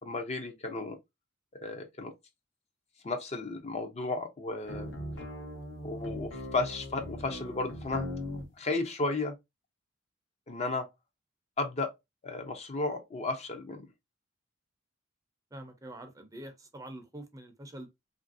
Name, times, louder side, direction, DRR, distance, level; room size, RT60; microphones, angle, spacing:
voice 1, 0.0-1.0 1.6-2.1 3.0-4.9 5.8-8.1 8.6-9.4 10.5-10.9 11.6-11.9 12.2-13.8, left 3 dB, 35° left, 0.5 m, -33 dB
sound 1, 4.6-8.5, left 1 dB, 70° left, 0.9 m, -40 dB
voice 2, 15.5-17.9, right 1 dB, 20° right, 0.5 m, -45 dB
2.9 x 2.5 x 2.5 m
head